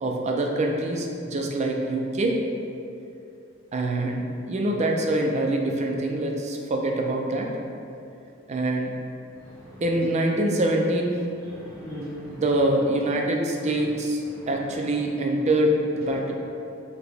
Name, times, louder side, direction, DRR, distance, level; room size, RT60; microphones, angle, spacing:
voice 1, 0.0-2.4 3.7-7.5 8.5-8.9 9.8-11.2 12.3-16.3, right 1 dB, 30° right, 1 dB, 0.4 m, -25 dB
voice 2, 9.3-9.8 11.4-12.4 13.6-13.7 14.3-14.7 16.1-16.2, equal, 10° left, -14 dB, 0.8 m, -40 dB
5.9 x 2.2 x 3.4 m, 2.6 s
head